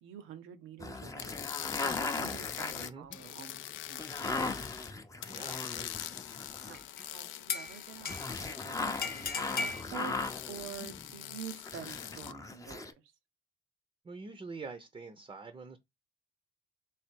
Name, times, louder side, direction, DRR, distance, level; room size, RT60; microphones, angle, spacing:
voice 1, 0.0-4.3 6.7-12.9, right 9 dB, 90° right, 0.7 m, -48 dB
sound 1, 0.8-7.0 8.0-11.4 11.6-12.9, left 3 dB, 15° left, 0.6 m, -39 dB
sound 2, 1.2-4.9 5.2-12.3, left 13 dB, 80° left, 0.4 m, -43 dB
voice 2, 2.7-3.1 5.3-5.9 14.0-15.8, right 4 dB, 25° right, 0.6 m, -45 dB
sound 3, 6.7-7.0 7.5-8.5 9.0-9.8, left 4 dB, 50° left, 0.7 m, -36 dB
3.3 x 3.3 x 4.4 m
cardioid pair, 90°, 20 cm